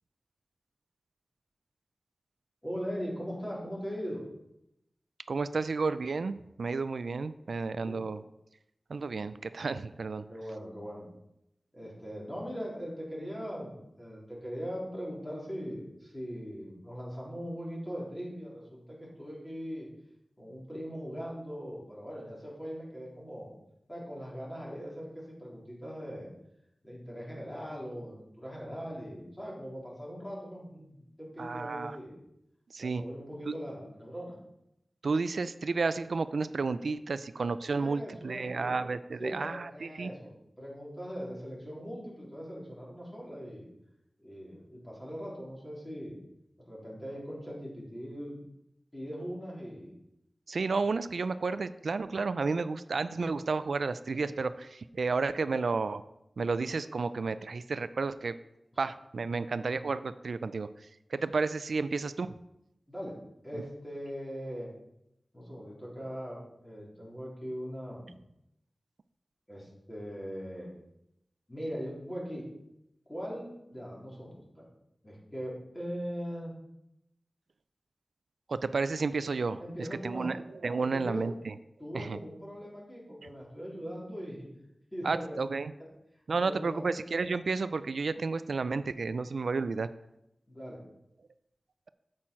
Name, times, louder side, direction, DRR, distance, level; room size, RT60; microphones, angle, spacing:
voice 1, 2.6-4.2 7.8-8.0 10.3-11.1 11.7-19.9 20.4-23.5 23.9-26.3 26.8-32.2 32.8-34.3 37.8-38.8 39.2-43.7 44.2-46.2 46.6-48.4 48.9-49.9 62.9-63.2 63.4-64.7 65.3-68.2 69.5-70.7 71.5-72.4 73.1-74.7 75.0-76.5 79.6-80.3 80.8-81.3 81.8-84.5 84.9-85.4 86.3-86.8 90.5-90.8, equal, 20° left, -4 dB, 3.4 m, -40 dB
voice 2, 5.3-8.2 8.9-10.3 31.4-32.0 32.7-33.0 33.5-33.6 35.0-40.1 50.5-56.0 56.4-58.4 58.8-62.4 63.5-63.7 78.5-81.5 81.9-82.2 85.0-85.7 86.3-89.9, right 4 dB, 90° right, 13 dB, 0.3 m, -32 dB
8.5 x 7.5 x 4.5 m, 0.84 s
wide cardioid pair, 90°, 0 cm